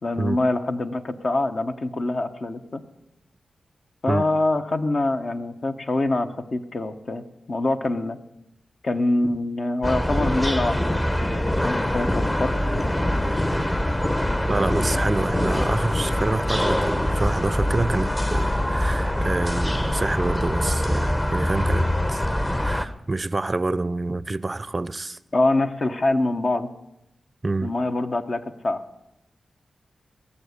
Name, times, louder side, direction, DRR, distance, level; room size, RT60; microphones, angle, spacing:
voice 1, 0.0-2.8 4.0-8.2 8.8-13.0 25.3-26.7 27.6-28.8, left 2 dB, 55° left, 0.9 m, -25 dB
sound 1, 9.8-22.9, left 1 dB, 20° left, 0.8 m, -24 dB
voice 2, 14.5-22.3 22.6-25.2 27.4-27.7, right 2 dB, 35° right, 0.5 m, -27 dB
18.0 x 7.2 x 8.2 m
cardioid pair, 50°, 0 cm